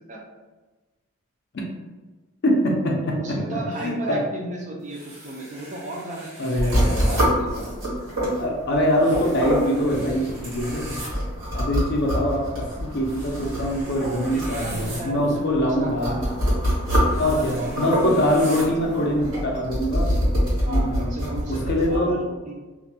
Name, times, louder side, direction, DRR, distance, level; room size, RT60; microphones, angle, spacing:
voice 1, 2.4-4.2 6.4-7.2 8.4-11.0 11.5-16.1 17.2-20.2 20.7-21.1 21.5-22.2, equal, 50° left, 0 dB, 0.4 m, -24 dB
voice 2, 3.2-7.7 14.0-16.3 16.9-19.2 20.7-22.5, right 1 dB, 35° right, -2 dB, 0.4 m, -35 dB
sound 1, 4.9-7.2 9.0-11.1 13.1-15.0 17.0-18.7, right 2 dB, 55° right, 0.8 m, -41 dB
sound 2, 6.6-22.0, equal, 80° right, 1.3 m, -26 dB
2.4 x 2.1 x 2.7 m, 1.2 s
head